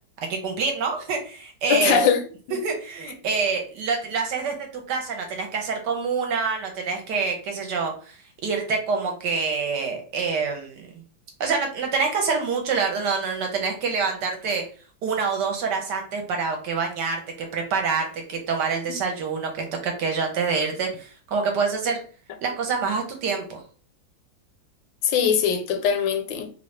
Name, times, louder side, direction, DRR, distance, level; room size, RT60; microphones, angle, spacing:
voice 1, 0.3-2.0 2.5-8.2 8.4-10.9 11.4-14.6 15.0-22.0 22.4-23.6, right 5 dB, 70° right, 1.2 m, -26 dB
voice 2, 1.7-2.2 2.5-2.6 25.0-26.5, left 7 dB, 80° left, 1.4 m, -21 dB
3.2 x 2.7 x 3.2 m
omnidirectional pair, 2.1 m